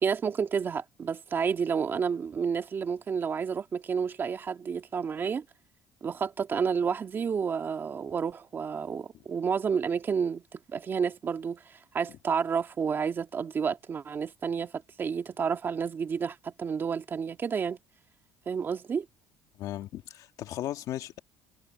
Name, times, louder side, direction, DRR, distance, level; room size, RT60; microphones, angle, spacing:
voice 1, 0.0-5.4 6.0-17.8 18.5-19.1, right 6 dB, 35° right, 2.0 m, -30 dB
voice 2, 19.6-21.2, left 13 dB, 65° left, 2.0 m, -36 dB
cardioid pair, 120°, 6 cm